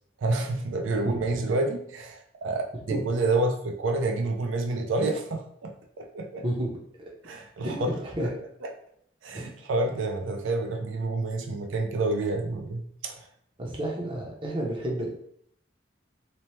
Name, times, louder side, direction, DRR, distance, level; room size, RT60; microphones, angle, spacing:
voice 1, 0.2-5.7 6.0-6.4 7.2-7.9 8.2-8.3 8.6-8.7 9.2-13.3, right 2 dB, 90° right, 3 dB, 0.4 m, -28 dB
voice 2, 7.6-8.3 9.3-9.5 13.6-15.1, right 1 dB, 25° right, -2 dB, 0.5 m, -31 dB
2.8 x 2.0 x 3.0 m, 0.67 s
head